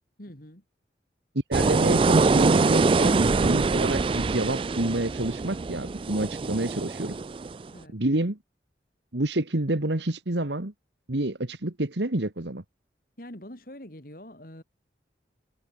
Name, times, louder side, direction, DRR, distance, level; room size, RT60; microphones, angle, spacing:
voice 1, 0.2-0.6 7.7-8.0 13.2-14.6, left 1 dB, 50° left, 4.4 m, -44 dB
sound 1, 1.5-7.6, right 3 dB, 30° right, 0.3 m, -24 dB
voice 2, 1.5-7.2 7.9-8.4 9.1-10.7 11.1-12.6, right 1 dB, 80° right, 1.9 m, -28 dB
head